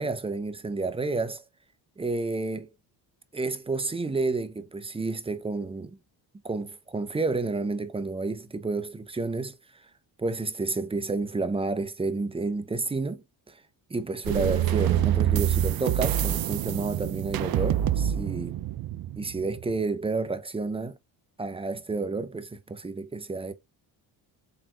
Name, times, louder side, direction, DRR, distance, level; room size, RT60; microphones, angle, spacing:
voice 1, 0.0-1.4 2.0-2.7 3.3-6.0 6.4-9.6 10.2-13.6 13.9-18.6 19.2-21.0 21.4-23.5, right 3 dB, 10° right, 0.6 m, -30 dB
sound 1, 14.2-19.8, right 11 dB, 50° right, 0.5 m, -26 dB
4.3 x 4.0 x 2.4 m
cardioid pair, 95°, 46 cm